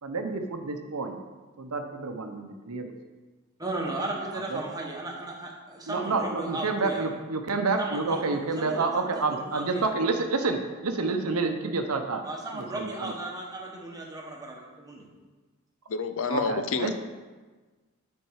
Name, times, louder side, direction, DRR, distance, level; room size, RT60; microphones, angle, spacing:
voice 1, 0.0-1.2 1.6-3.0 4.5-4.6 5.9-12.3 12.5-13.1 16.3-17.0, right 3 dB, 85° right, 6 dB, 0.8 m, -29 dB
voice 2, 3.6-7.0 7.8-8.2 8.6-9.9 12.2-15.1, right 2 dB, 15° right, -1 dB, 1.3 m, -35 dB
voice 3, 15.9-17.0, left 4 dB, 60° left, 8 dB, 0.5 m, -29 dB
9.3 x 4.6 x 4.7 m, 1.3 s
head